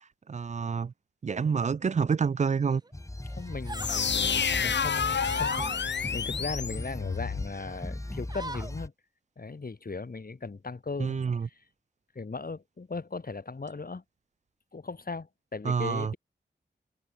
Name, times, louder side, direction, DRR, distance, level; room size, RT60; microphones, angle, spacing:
voice 1, 0.3-0.9 1.2-2.8 11.0-11.5 15.6-16.1, right 5 dB, 40° right, 0.4 m, -28 dB
sound 1, 2.7-2.9 3.3-4.1 4.5-5.8 6.3-7.2 7.6-7.8 8.1-8.7, right 2 dB, 20° right, 1.1 m, -42 dB
sound 2, 2.9-8.9, left 1 dB, 15° left, 2.0 m, -38 dB
voice 2, 3.4-8.9 9.4-11.6 12.2-14.0 14.7-16.2, left 4 dB, 50° left, 3.7 m, -38 dB
sound 3, 3.7-7.5, left 6 dB, 70° left, 1.1 m, -29 dB
cardioid pair, 45°, 19 cm